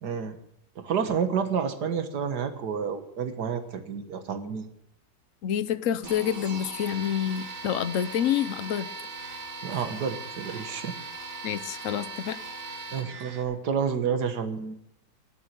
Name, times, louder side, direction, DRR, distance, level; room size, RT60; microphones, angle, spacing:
voice 1, 0.0-0.4 0.8-4.7 9.6-11.0 12.9-14.8, right 7 dB, 60° right, 2.0 m, -29 dB
voice 2, 5.4-8.9 11.4-12.4, left 9 dB, 60° left, 0.9 m, -28 dB
sound 1, 6.0-13.4, right 3 dB, 90° right, 5.0 m, -39 dB
19.0 x 7.4 x 9.1 m
omnidirectional pair, 2.1 m